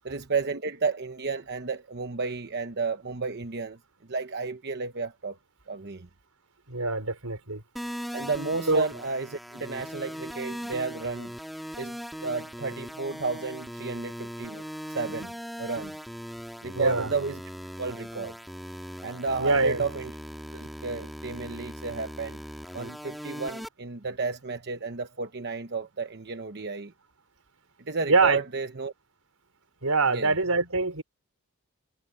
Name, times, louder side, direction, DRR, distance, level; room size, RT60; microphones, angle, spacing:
voice 1, 0.0-3.8 4.1-5.4 5.7-6.1 8.1-11.3 11.8-15.9 16.6-17.4 17.8-18.3 19.0-20.1 20.5-22.4 22.7-26.9 27.9-28.9 30.1-30.3, right 4 dB, 50° right, 1.0 m, -32 dB
voice 2, 6.7-7.6 8.7-8.9 16.7-17.1 19.4-19.8 28.1-28.4 29.8-31.0, right 3 dB, 85° right, 4.9 m, -24 dB
sound 1, 7.8-23.7, equal, ahead, 1.7 m, -39 dB
head